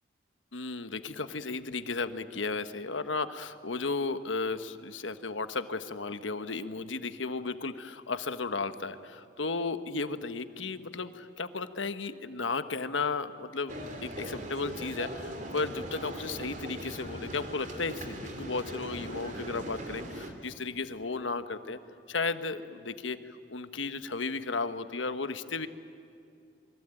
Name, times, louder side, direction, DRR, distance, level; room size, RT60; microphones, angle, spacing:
voice 1, 0.5-21.8 22.1-25.7, left 3 dB, 85° left, 10 dB, 1.3 m, -34 dB
sound 1, 13.7-20.3, right 1 dB, 40° right, 2.9 m, -40 dB
sound 2, 17.0-19.4, equal, 30° left, 1.5 m, -55 dB
27.5 x 23.0 x 9.0 m, 2.5 s
head